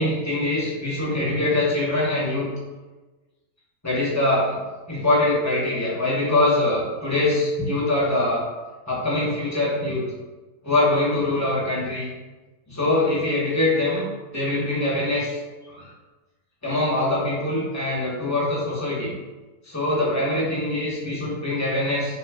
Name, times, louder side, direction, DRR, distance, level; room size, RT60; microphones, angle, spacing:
voice 1, 0.0-2.5 3.8-8.4 8.9-10.0 10.6-12.1 12.7-15.4 15.7-15.9 16.6-19.1 19.6-22.2, left 2 dB, 15° left, -7 dB, 0.7 m, -23 dB
2.8 x 2.3 x 3.4 m, 1.2 s
omnidirectional pair, 1.6 m